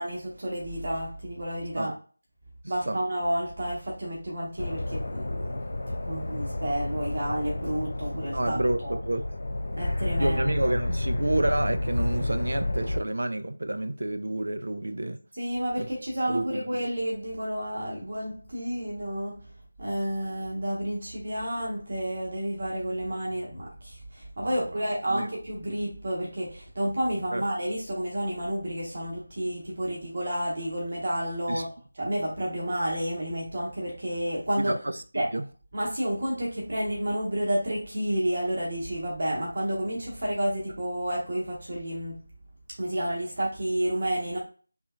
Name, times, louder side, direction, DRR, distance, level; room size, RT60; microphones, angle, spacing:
voice 1, 0.0-1.9 2.7-5.6 6.1-8.9 9.7-10.7 15.4-19.5 19.8-34.8 35.1-35.4 35.7-42.2 42.8-44.4, right 1 dB, 40° right, 0.9 m, -30 dB
sound 1, 4.6-13.0, left 1 dB, 50° left, 0.4 m, -30 dB
voice 2, 8.3-9.2 10.2-15.2 15.8-15.9 16.3-16.7 24.4-24.6 25.1-25.3 27.3-27.4 31.5-31.6 34.6-35.4, right 1 dB, 60° right, 0.4 m, -29 dB
3.4 x 2.7 x 2.2 m
figure-of-eight pair, 165°, 0 cm